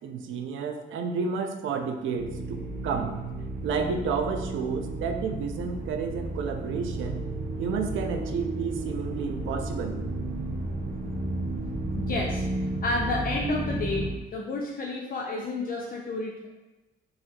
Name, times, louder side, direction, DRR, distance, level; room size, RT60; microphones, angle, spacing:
voice 1, 0.0-2.6 2.8-3.1 3.6-7.2 7.6-10.0, right 5 dB, 80° right, 5 dB, 0.6 m, -31 dB
sound 1, 2.1-14.1, right 2 dB, 45° right, 0.9 m, -33 dB
voice 2, 12.0-12.4 12.8-14.1 14.3-16.5, left 2 dB, 45° left, -2 dB, 0.6 m, -30 dB
4.0 x 2.8 x 4.2 m, 1.1 s
cardioid pair, 90°, 20 cm